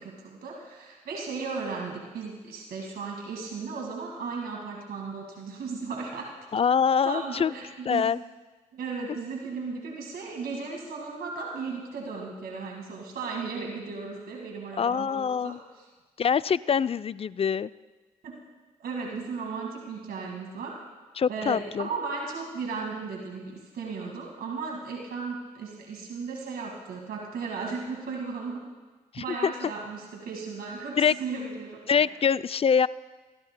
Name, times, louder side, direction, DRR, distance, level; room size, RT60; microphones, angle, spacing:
voice 1, 0.0-6.3 7.0-8.1 8.7-15.9 18.2-18.4 18.8-20.7 21.3-28.7 29.2-32.1, right 4 dB, 70° right, 0 dB, 1.9 m, -36 dB
voice 2, 6.5-7.5 7.9-8.2 14.8-15.6 16.2-17.7 21.2-21.9 29.1-29.5 31.0-31.1 31.9-32.9, left 7 dB, 35° left, 17 dB, 0.4 m, -24 dB
22.0 x 14.5 x 2.2 m, 1.3 s
hypercardioid pair, 40°, 17 cm